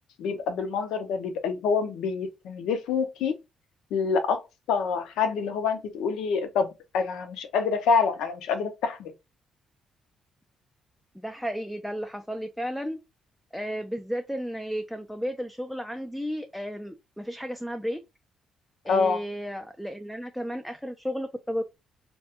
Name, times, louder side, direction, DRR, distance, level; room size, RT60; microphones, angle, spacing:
voice 1, 0.2-3.3 3.9-4.4 4.7-9.1 18.9-19.2, left 5 dB, 90° left, 0.5 m, -26 dB
voice 2, 11.1-13.0 13.5-18.0 18.8-21.6, equal, ahead, 0.3 m, -33 dB
2.3 x 2.2 x 2.8 m
cardioid pair, 90°, 0 cm